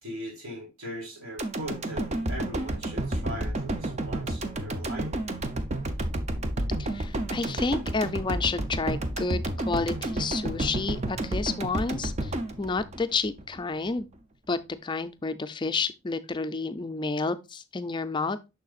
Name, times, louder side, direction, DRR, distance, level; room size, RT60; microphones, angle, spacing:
voice 1, 0.0-5.1, equal, 75° right, 3.3 m, -39 dB
sound 1, 1.4-13.6 14.0-14.1, right 1 dB, 30° right, 0.6 m, -31 dB
voice 2, 6.8-14.1 14.5-18.5, left 4 dB, 20° left, 0.4 m, -30 dB
6.5 x 6.5 x 2.4 m
head